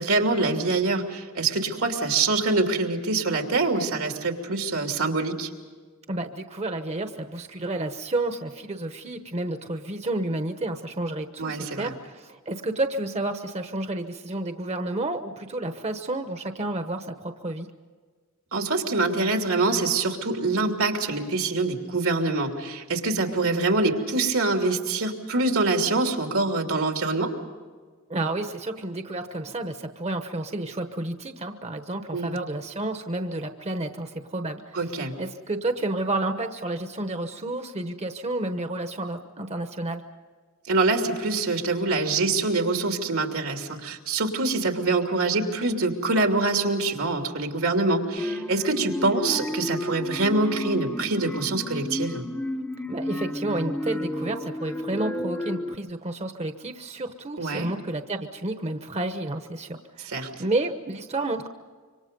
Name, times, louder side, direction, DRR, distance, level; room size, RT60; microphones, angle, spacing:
voice 1, 0.0-5.5 11.4-11.9 18.5-27.3 32.1-32.4 34.7-35.1 40.7-52.2 57.4-57.7 60.1-60.3, right 3 dB, 85° right, 3 dB, 2.9 m, -25 dB
voice 2, 6.1-17.7 28.1-34.8 35.2-40.0 52.9-61.5, right 2 dB, 30° right, 7 dB, 1.0 m, -30 dB
sound 1, 48.2-55.8, left 1 dB, 10° left, 0.8 m, -32 dB
26.5 x 24.5 x 5.3 m, 1.5 s
head